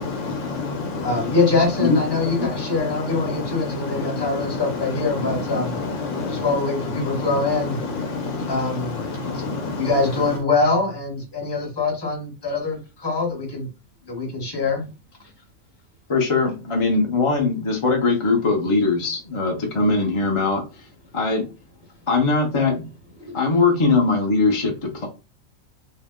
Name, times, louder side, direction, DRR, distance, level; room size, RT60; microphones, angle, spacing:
voice 1, 0.0-10.4, left 3 dB, 70° left, 6 dB, 0.9 m, -29 dB
voice 2, 1.0-5.7 6.4-7.8 8.5-9.0 9.8-13.7 14.1-14.9 23.2-23.4, left 3 dB, 20° left, 1 dB, 0.8 m, -23 dB
voice 3, 16.1-20.6 21.1-21.4 22.1-22.8 23.3-25.1, left 3 dB, 40° left, 1 dB, 0.5 m, -21 dB
2.8 x 2.1 x 3.5 m, 0.30 s
omnidirectional pair, 1.4 m